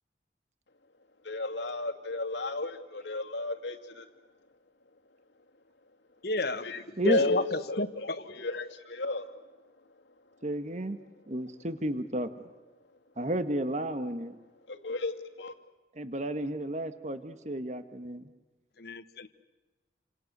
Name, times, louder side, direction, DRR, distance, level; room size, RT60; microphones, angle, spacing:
voice 1, 1.2-4.1 6.6-9.7 14.7-15.5, left 2 dB, 80° left, 5 dB, 2.4 m, -33 dB
voice 2, 6.2-6.7 7.0-8.4 18.8-19.3, left 2 dB, 60° left, 12 dB, 1.2 m, -32 dB
voice 3, 10.4-11.0 11.3-12.3 13.2-14.3 15.9-18.3, right 1 dB, 40° right, 10 dB, 1.4 m, -32 dB
29.5 x 27.0 x 6.8 m, 1.2 s
head